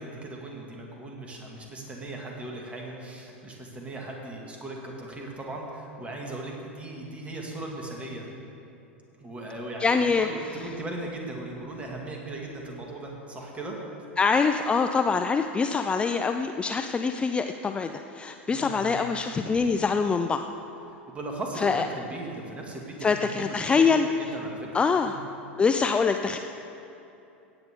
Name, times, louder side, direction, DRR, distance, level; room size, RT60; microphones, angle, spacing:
voice 1, 0.0-8.3 9.2-13.8 18.5-19.0 19.4-19.7 20.9-23.9 24.3-24.7 25.1-25.2, right 2 dB, 20° right, 0 dB, 2.2 m, -38 dB
voice 2, 9.8-10.3 14.2-20.4 21.6-21.8 23.0-24.1 24.7-25.1 25.6-26.4, left 5 dB, 15° left, 7 dB, 0.4 m, -24 dB
17.0 x 8.8 x 3.7 m, 2.9 s
figure-of-eight pair, 85°, 6 cm